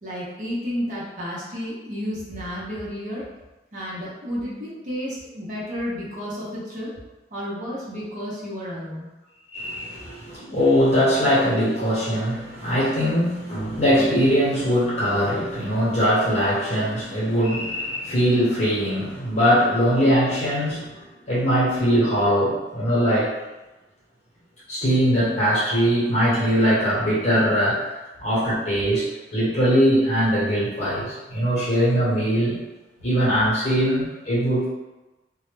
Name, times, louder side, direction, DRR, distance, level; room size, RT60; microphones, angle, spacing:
voice 1, 0.0-3.2 3.7-6.9 7.3-9.1, equal, 45° right, -8 dB, 0.8 m, -31 dB
voice 2, 9.5-23.3 24.7-29.1 29.3-32.6 33.0-34.7, equal, 40° left, -8 dB, 0.9 m, -21 dB
2.2 x 2.1 x 3.1 m, 1.1 s
head